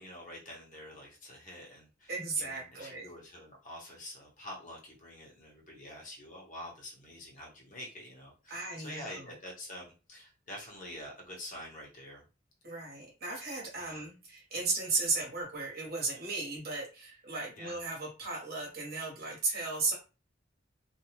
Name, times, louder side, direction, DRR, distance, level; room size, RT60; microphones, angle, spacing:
voice 1, 0.0-2.1 2.4-12.2 13.7-14.1 17.6-17.8, left 1 dB, 45° left, -2 dB, 1.1 m, -47 dB
voice 2, 2.1-3.0 8.5-9.3 12.6-19.9, right 3 dB, 50° right, -2 dB, 1.1 m, -35 dB
2.6 x 2.3 x 2.9 m, 0.32 s
head